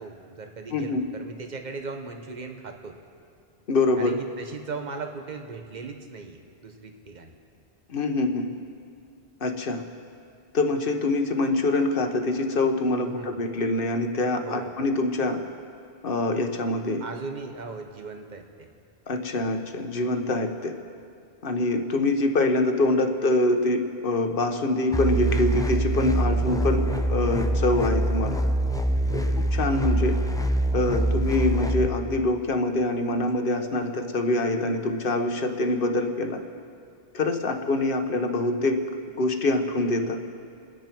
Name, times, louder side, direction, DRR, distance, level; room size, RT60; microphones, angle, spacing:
voice 1, 0.0-2.9 4.0-7.4 13.0-13.4 14.4-14.7 17.0-18.7 26.3-26.5 29.1-29.4, right 4 dB, 45° right, 5 dB, 1.3 m, -38 dB
voice 2, 0.7-1.0 3.7-4.2 7.9-8.5 9.4-9.8 10.5-15.4 16.0-17.0 19.1-20.7 21.4-28.4 29.5-36.4 37.1-38.8 39.2-40.2, left 2 dB, 55° left, 5 dB, 1.3 m, -25 dB
sound 1, 24.9-31.9, right 1 dB, 5° left, 0.3 m, -24 dB
29.5 x 10.0 x 4.6 m, 2.4 s
omnidirectional pair, 1.1 m